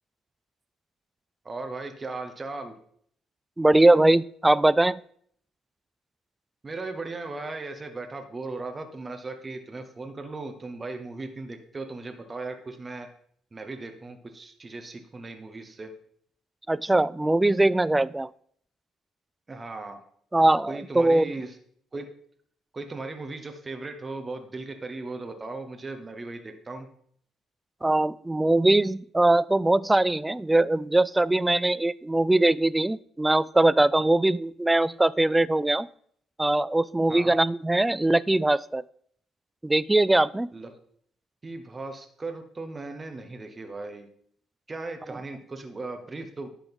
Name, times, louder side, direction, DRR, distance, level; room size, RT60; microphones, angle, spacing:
voice 1, 1.4-2.7 6.6-13.1 13.5-15.9 19.5-20.0 20.7-21.6 21.9-22.1 22.7-26.9 37.1-37.3 40.5-40.7 41.4-44.1 44.7-46.5, right 3 dB, 30° right, 6 dB, 1.0 m, -37 dB
voice 2, 3.6-5.0 16.7-18.3 20.3-21.3 27.8-35.9 36.4-38.8 39.6-40.5, right 2 dB, 15° right, 20 dB, 0.3 m, -21 dB
10.5 x 3.8 x 5.3 m, 0.64 s
supercardioid pair, 70°, 0 cm